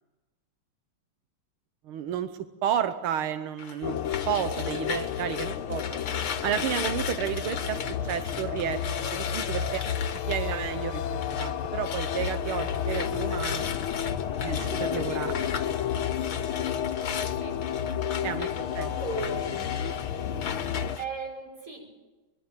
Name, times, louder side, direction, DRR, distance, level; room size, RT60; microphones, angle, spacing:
voice 1, 1.9-2.3 2.6-4.0 4.3-6.0 6.4-7.8 8.1-10.0 10.3-11.0 11.3-13.7 14.4-15.4 15.7-15.8 16.4-16.5 18.2-18.5 18.8-18.9, right 9 dB, 90° right, 9 dB, 1.8 m, -31 dB
sound 1, 3.6-11.5 11.8-21.0, left 7 dB, 65° left, 1.9 m, -38 dB
sound 2, 3.8-21.0, left 8 dB, 85° left, 1.8 m, -31 dB
voice 2, 14.4-15.5 17.4-17.7 18.4-19.7 20.9-21.9, right 1 dB, 40° right, 0 dB, 6.3 m, -37 dB
24.5 x 20.5 x 7.5 m, 1.2 s
omnidirectional pair, 2.3 m